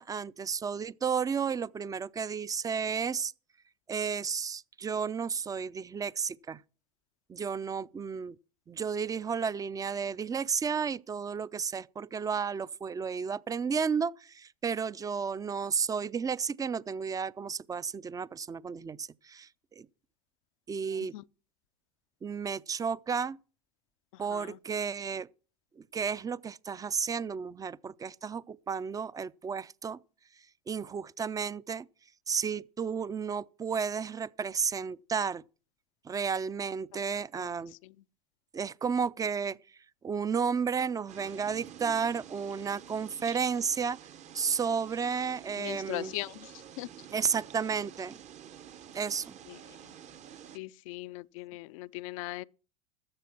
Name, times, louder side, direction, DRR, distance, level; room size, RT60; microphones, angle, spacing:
voice 1, 0.0-3.3 3.9-6.6 7.3-8.4 8.7-19.9 20.7-21.1 22.2-23.4 24.2-25.3 25.8-30.0 30.7-31.9 32.3-35.4 36.0-37.8 38.5-39.6 40.0-44.0 44.3-46.1 47.1-48.2 48.9-49.4, right 6 dB, 20° right, 0.5 m, -32 dB
sound 1, 41.1-50.6, right 9 dB, 40° right, 0.9 m, -49 dB
voice 2, 45.6-46.9 49.5-49.6 50.5-52.4, left 20 dB, 65° left, 0.5 m, -40 dB
13.0 x 7.6 x 5.9 m
hypercardioid pair, 85°, 18 cm